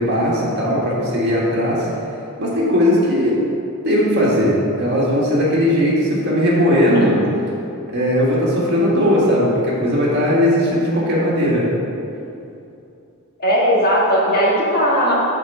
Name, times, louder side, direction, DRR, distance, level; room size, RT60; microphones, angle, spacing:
voice 1, 0.0-1.9 2.4-3.4 3.8-7.2 7.9-11.7, equal, 50° right, -6 dB, 1.7 m, -18 dB
voice 2, 13.4-15.1, equal, 45° left, -5 dB, 1.5 m, -17 dB
6.4 x 4.5 x 5.8 m, 2.7 s
head